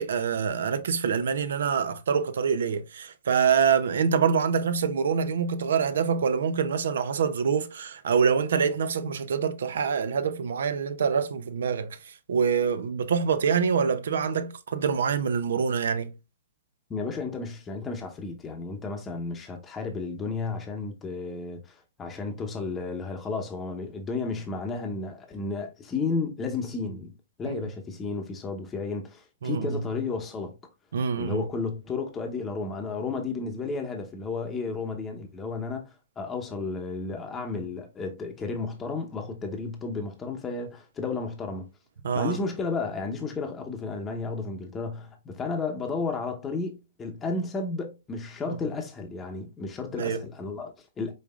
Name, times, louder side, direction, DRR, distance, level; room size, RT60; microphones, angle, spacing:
voice 1, 0.0-16.1 27.5-27.6 29.4-29.8 30.9-31.5 42.0-42.4 48.5-48.6 50.0-50.2, right 6 dB, 70° right, 0.6 m, -25 dB
voice 2, 16.9-27.1 27.4-30.6 31.2-41.7 42.1-51.1, left 4 dB, 20° left, 0.8 m, -33 dB
5.4 x 3.5 x 2.4 m
hypercardioid pair, 125°, 0 cm